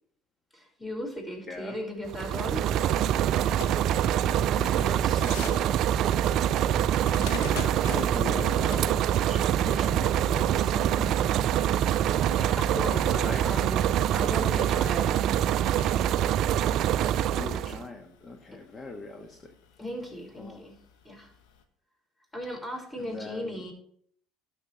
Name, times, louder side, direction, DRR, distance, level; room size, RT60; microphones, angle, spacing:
voice 1, 0.5-2.7 11.9-15.2 18.5-18.6 19.8-20.8 21.0-21.3 22.3-23.7, equal, 15° left, 1 dB, 5.4 m, -37 dB
sound 1, 2.0-21.6, left 7 dB, 70° left, 1.2 m, -48 dB
sound 2, 2.1-17.9, right 10 dB, 55° right, 0.4 m, -25 dB
voice 2, 4.2-5.7 7.4-11.2 12.8-13.5 17.3-19.5 20.4-20.6 22.9-23.7, left 3 dB, 30° left, 4 dB, 1.5 m, -40 dB
17.5 x 6.8 x 3.4 m, 0.63 s
hypercardioid pair, 65°, 0 cm